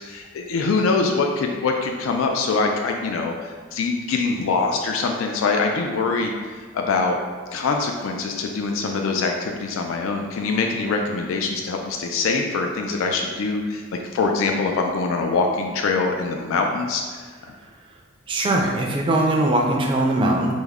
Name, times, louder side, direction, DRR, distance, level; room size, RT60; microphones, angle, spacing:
voice 1, 0.0-6.3 6.7-7.2 7.5-13.8 14.1-17.0, left 4 dB, 90° left, 2 dB, 0.3 m, -23 dB
voice 2, 18.3-20.5, right 1 dB, 25° right, 0 dB, 0.4 m, -20 dB
3.4 x 2.0 x 3.4 m, 1.5 s
head